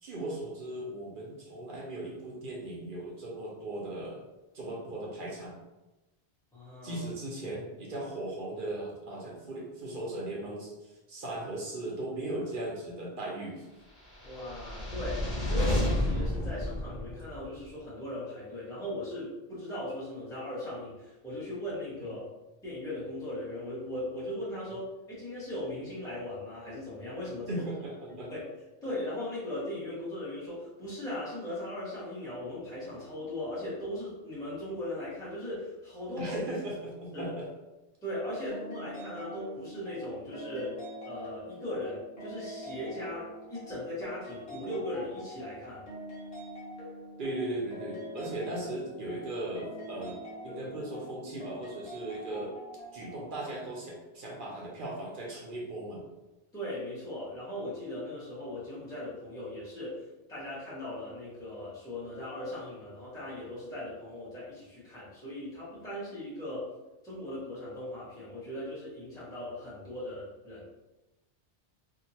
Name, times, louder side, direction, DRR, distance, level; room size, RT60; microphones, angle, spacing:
voice 1, 0.0-4.2 4.5-5.5 6.8-13.7 22.0-22.1 24.7-24.8 27.5-28.3 36.2-37.5 47.2-52.5 52.9-56.0, right 1 dB, 55° right, -3 dB, 0.7 m, -38 dB
voice 2, 6.5-7.0 14.2-22.2 22.6-27.6 28.3-28.4 28.8-36.4 37.1-37.4 38.0-40.7 41.0-45.8 56.5-60.0 60.3-66.7 67.0-70.7, left 1 dB, 5° left, -10 dB, 0.9 m, -38 dB
sound 1, 14.1-17.6, left 1 dB, 40° left, 0.8 m, -31 dB
sound 2, 38.5-53.2, equal, 60° left, 1.2 m, -44 dB
2.8 x 2.5 x 2.7 m, 1.0 s
omnidirectional pair, 1.2 m